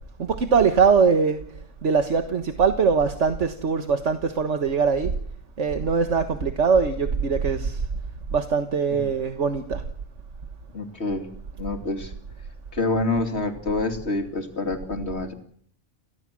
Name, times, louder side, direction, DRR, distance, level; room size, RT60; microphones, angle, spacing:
voice 1, 0.2-1.4 1.8-5.1 5.6-7.8 8.3-9.8, right 5 dB, 80° right, 6 dB, 1.7 m, -22 dB
voice 2, 10.7-11.3 11.6-12.1 12.7-15.3, left 2 dB, 65° left, 5 dB, 3.0 m, -27 dB
29.0 x 17.0 x 7.5 m, 0.62 s
omnidirectional pair, 1.2 m